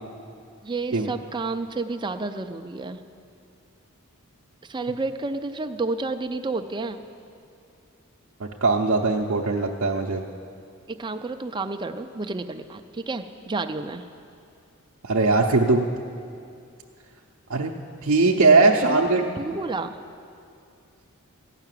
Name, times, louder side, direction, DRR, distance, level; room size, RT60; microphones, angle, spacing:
voice 1, 0.6-3.0 4.6-7.0 10.9-14.0 18.8-19.0 19.4-20.0, right 3 dB, 20° right, 8 dB, 0.5 m, -30 dB
voice 2, 8.4-10.2 15.0-15.8 17.5-17.7 18.0-19.2, right 3 dB, 60° right, -2 dB, 0.7 m, -20 dB
15.5 x 5.8 x 9.1 m, 2.4 s
head